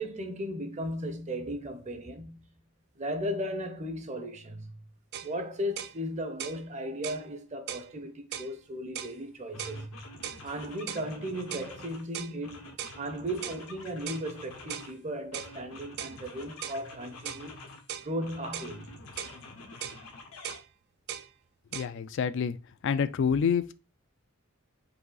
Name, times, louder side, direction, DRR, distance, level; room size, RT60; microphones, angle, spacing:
voice 1, 0.0-2.4 3.0-4.8 5.2-10.0 10.4-12.7 13.0-17.6 18.0-18.9, equal, 35° right, 0.7 m, -36 dB
sound 1, 5.1-5.3 5.8-6.0 6.4-6.6 7.0-7.2 7.7-7.9 8.3-8.5 9.0-9.2 9.6-9.8 10.2-10.4 10.9-11.1 11.5-11.7 12.1-12.4 12.8-13.0 13.4-13.6 14.1-14.3 14.7-14.9 15.3-15.5 16.0-16.2 16.6-16.8 17.3-17.5 17.9-18.1 18.5-18.7 19.2-19.4 19.8-20.0 20.4-20.7 21.1-21.3 21.7-21.9, right 9 dB, 50° right, 0.3 m, -38 dB
sound 2, 9.0-9.1 9.5-12.1 12.4-15.0 15.3-17.8 18.2-20.6, left 2 dB, 90° left, 1.1 m, -48 dB
voice 2, 21.7-22.6 22.8-23.7, left 6 dB, 60° left, 0.3 m, -27 dB
4.9 x 2.8 x 3.8 m
head